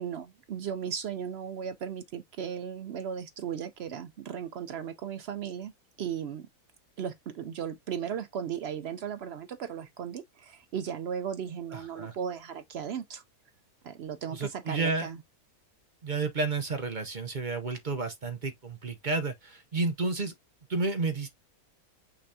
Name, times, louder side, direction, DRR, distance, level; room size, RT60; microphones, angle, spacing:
voice 1, 0.0-5.7 6.0-6.5 7.0-13.2 13.8-15.2, right 8 dB, 70° right, 0.6 m, -36 dB
voice 2, 11.7-12.1 14.3-15.1 16.0-20.3 20.7-21.3, right 3 dB, 40° right, 0.8 m, -31 dB
6.0 x 3.2 x 2.7 m
omnidirectional pair, 1.6 m